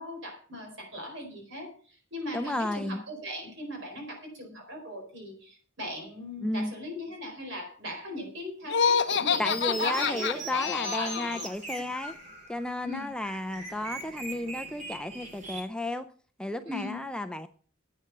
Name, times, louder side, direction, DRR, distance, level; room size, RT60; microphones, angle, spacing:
voice 1, 0.0-11.5 12.8-13.1 16.7-17.1, left 1 dB, 60° right, 4.6 m, -39 dB
voice 2, 2.3-3.0 6.4-6.7 9.4-12.1 12.5-16.1 16.4-17.5, left 1 dB, 5° left, 0.4 m, -33 dB
Laughter, 8.7-11.5, left 6 dB, 55° left, 0.7 m, -27 dB
sound 1, 9.1-15.6, right 2 dB, 35° right, 2.5 m, -41 dB
11.0 x 8.7 x 5.5 m
head